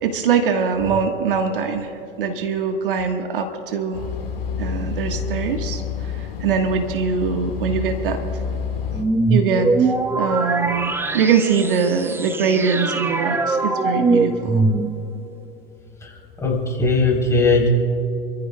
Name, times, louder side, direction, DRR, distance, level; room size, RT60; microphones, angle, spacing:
voice 1, 0.0-4.0 4.6-8.2 9.3-14.6, right 5 dB, 65° right, 6 dB, 1.3 m, -22 dB
sound 1, 3.9-9.0, left 5 dB, 75° left, 1.8 m, -28 dB
sound 2, 8.9-15.2, right 3 dB, 10° right, 0.6 m, -22 dB
voice 2, 16.4-17.7, left 3 dB, 10° left, -2 dB, 3.5 m, -18 dB
27.0 x 14.0 x 2.2 m, 3.0 s
figure-of-eight pair, 100°, 29 cm